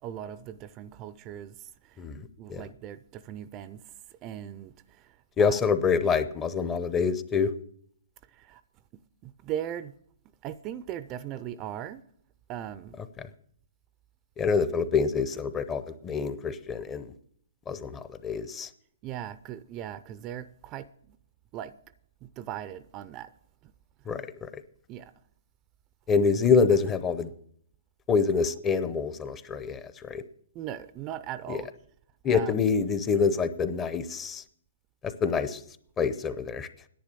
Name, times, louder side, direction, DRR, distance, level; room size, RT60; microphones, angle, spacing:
voice 1, 0.0-2.0 2.4-3.8 4.1-5.6 8.3-8.6 8.9-9.9 10.4-12.0 12.5-13.0 19.0-21.2 21.5-21.8 22.2-23.3 23.6-23.7 24.9-25.1 30.5-31.7 32.3-32.7, right 11 dB, 30° right, 0.5 m, -39 dB
voice 2, 5.4-7.5 14.4-17.1 17.7-18.7 24.1-24.5 26.1-27.3 28.1-30.2 31.5-31.6 32.2-34.4 35.0-35.6 36.0-36.7, left 5 dB, 20° left, 0.7 m, -26 dB
10.5 x 8.9 x 6.8 m
hypercardioid pair, 140°, 0 cm